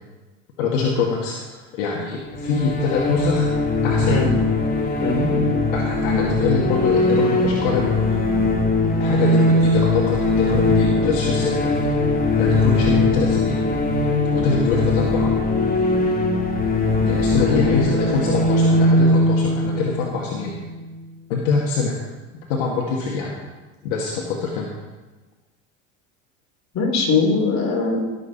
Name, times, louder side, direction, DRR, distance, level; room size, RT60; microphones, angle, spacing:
voice 1, 0.6-3.5 3.8-4.4 5.7-8.2 9.0-11.7 12.4-13.6 14.3-15.3 17.0-20.5 21.3-21.9 22.5-23.3 23.8-24.7, left 4 dB, 65° left, -2 dB, 2.1 m, -24 dB
sound 1, 2.3-21.0, left 2 dB, 20° left, 2.2 m, -20 dB
voice 2, 5.0-5.6 17.5-17.6 26.7-28.0, left 3 dB, 40° left, 0 dB, 3.8 m, -21 dB
17.5 x 7.6 x 4.4 m, 1.2 s
hypercardioid pair, 80°, 41 cm